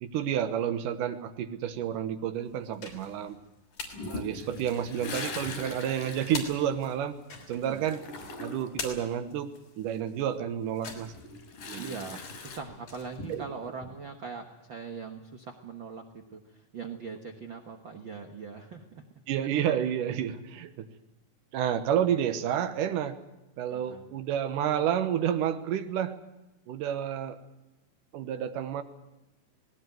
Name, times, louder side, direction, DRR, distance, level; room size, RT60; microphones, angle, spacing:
voice 1, 0.0-3.4 4.1-7.2 7.5-8.0 8.4-11.1 11.7-12.0 13.3-13.4 19.3-20.9 21.5-23.2 23.6-26.2 26.7-27.4 28.1-28.8, right 9 dB, 80° right, 8 dB, 2.7 m, -30 dB
sound 1, 2.5-4.0 4.4-13.9, left 4 dB, 70° left, 4.8 m, -44 dB
Toilet flush, 3.9-7.4 7.6-8.8 10.9-12.6, left 3 dB, 90° left, 4.7 m, -40 dB
voice 2, 11.8-19.0 23.7-24.1, right 5 dB, 50° right, 4 dB, 1.5 m, -41 dB
19.0 x 17.5 x 9.3 m, 0.98 s
omnidirectional pair, 3.7 m